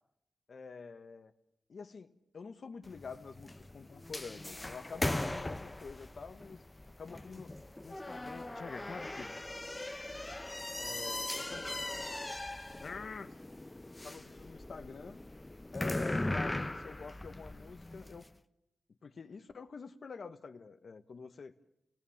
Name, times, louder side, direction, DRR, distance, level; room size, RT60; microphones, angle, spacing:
voice 1, 0.5-1.3 1.7-6.6 7.0-7.6 7.8-9.4 10.8-11.8 12.8-13.4 14.0-15.2 15.7-18.3 19.0-21.5, left 5 dB, 60° left, 9 dB, 1.3 m, -47 dB
sound 1, 2.8-18.3, left 1 dB, 15° left, 0.8 m, -39 dB
29.5 x 18.0 x 7.3 m, 0.84 s
wide cardioid pair, 95°, 0 cm